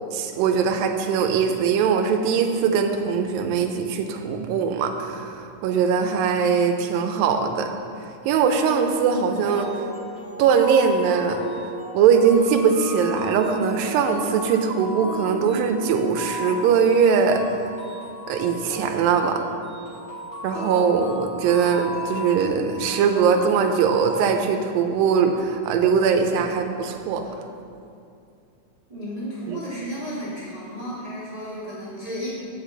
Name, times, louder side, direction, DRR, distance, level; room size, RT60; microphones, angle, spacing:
voice 1, 0.1-7.7 8.3-9.7 10.4-11.4 11.9-17.4 18.3-19.4 20.4-27.2 29.5-29.6, right 6 dB, 85° right, 5 dB, 2.3 m, -21 dB
sound 1, 9.5-24.2, equal, 30° left, 1.2 m, -34 dB
voice 2, 28.9-32.3, equal, 25° right, -9 dB, 0.8 m, -33 dB
8.1 x 7.3 x 3.9 m, 2.4 s
omnidirectional pair, 4.0 m